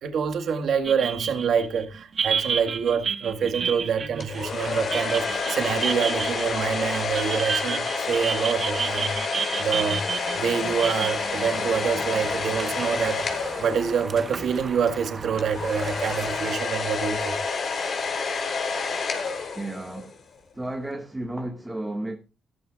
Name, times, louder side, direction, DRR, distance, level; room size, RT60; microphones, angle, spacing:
voice 1, 0.0-9.2 9.6-10.0 10.4-17.4, right 6 dB, 65° right, 1.9 m, -26 dB
sound 1, 0.8-12.6, right 6 dB, 45° right, 0.7 m, -31 dB
sound 2, 4.2-14.3 15.4-20.1, left 4 dB, 50° left, 3.9 m, -29 dB
sound 3, 9.5-16.5, right 3 dB, 30° right, 1.2 m, -40 dB
voice 2, 19.5-20.2 20.5-22.2, right 1 dB, 10° right, 1.9 m, -33 dB
15.5 x 13.5 x 2.5 m
cardioid pair, 90°, 0 cm